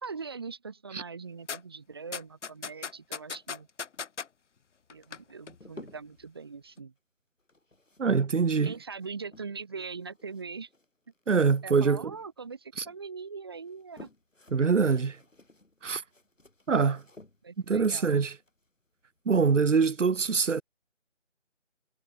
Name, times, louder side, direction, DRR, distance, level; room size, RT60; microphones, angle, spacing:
voice 1, 0.0-3.7 4.9-6.9 8.6-10.7 11.6-14.1 17.4-18.1, right 5 dB, 20° right, 1.9 m, -41 dB
sound 1, 1.5-1.6 2.1-4.3 4.9-5.2 5.5-5.6, left 6 dB, 70° left, 0.6 m, -37 dB
sound 2, 5.0-6.3 7.4-9.7 10.0-11.9 12.1-13.0 13.5-19.6, left 2 dB, 85° left, 4.7 m, -55 dB
voice 2, 8.0-8.7 11.3-12.0 12.8-12.9 14.5-15.2 15.8-16.0 16.7-17.0 17.7-18.4 19.3-20.6, right 5 dB, 75° right, 0.9 m, -24 dB
figure-of-eight pair, 165°, 37 cm